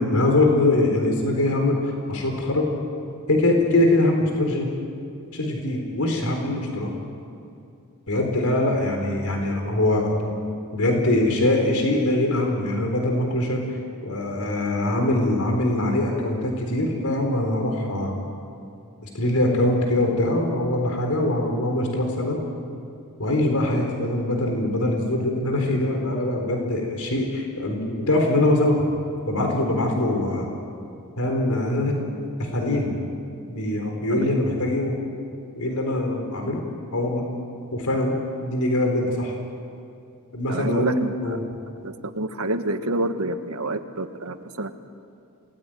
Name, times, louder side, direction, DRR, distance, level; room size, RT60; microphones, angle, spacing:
voice 1, 0.0-2.7 3.3-4.7 5.3-6.9 8.1-10.3 10.7-18.1 19.1-22.4 23.2-28.9 29.3-30.5 31.2-32.0 32.5-33.0 33.5-34.9 35.5-36.6 36.9-37.2 37.7-39.3 40.3-41.4, left 1 dB, 90° left, 2 dB, 4.4 m, -23 dB
voice 2, 40.5-41.4 41.8-44.7, right 1 dB, 85° right, 8 dB, 1.6 m, -28 dB
28.5 x 20.0 x 9.3 m, 2.5 s
head